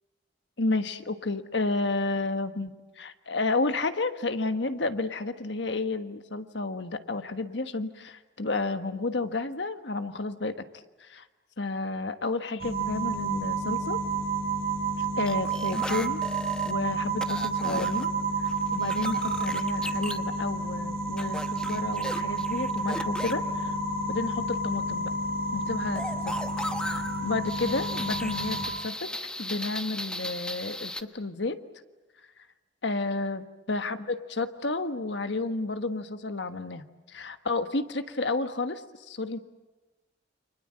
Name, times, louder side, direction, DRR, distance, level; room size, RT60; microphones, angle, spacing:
voice 1, 0.6-10.6 11.0-11.2 11.6-14.0 15.0-16.2 16.6-18.1 18.4-23.7 24.1-25.1 25.5-26.3 26.8-29.1 29.4-31.6 32.8-39.4, left 3 dB, 70° left, 9 dB, 1.4 m, -31 dB
sound 1, 12.6-28.6, right 3 dB, 55° right, 5.4 m, -30 dB
sound 2, 15.3-16.7 17.2-18.1 18.5-20.2 21.2-23.3 26.0-31.0, left 1 dB, 5° left, 1.0 m, -36 dB
29.5 x 25.5 x 7.7 m, 1.1 s
head